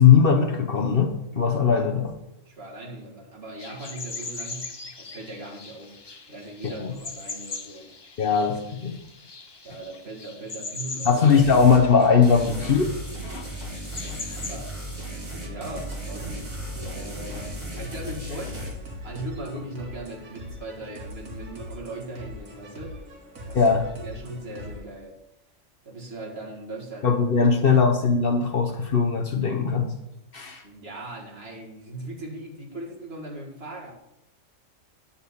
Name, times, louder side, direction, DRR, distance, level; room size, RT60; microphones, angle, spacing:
voice 1, 0.0-2.1 6.6-6.9 8.2-9.0 11.0-12.9 13.2-13.5 23.5-23.9 27.0-29.9 30.3-30.6, left 6 dB, 50° left, 2 dB, 0.9 m, -20 dB
voice 2, 2.5-6.0 6.3-7.9 9.6-11.2 14.1-14.8 15.4-23.0 23.5-23.8 24.0-25.2 25.8-27.2 27.6-27.8 30.6-33.9, right 2 dB, 50° right, -2 dB, 2.2 m, -39 dB
sound 1, 3.6-15.0, left 3 dB, 35° left, 0.4 m, -40 dB
sound 2, 11.3-11.8 12.2-18.7, equal, 30° right, 2.2 m, -36 dB
sound 3, 15.1-24.8, equal, 85° right, 1.8 m, -41 dB
9.6 x 4.2 x 7.0 m, 0.86 s
omnidirectional pair, 1.4 m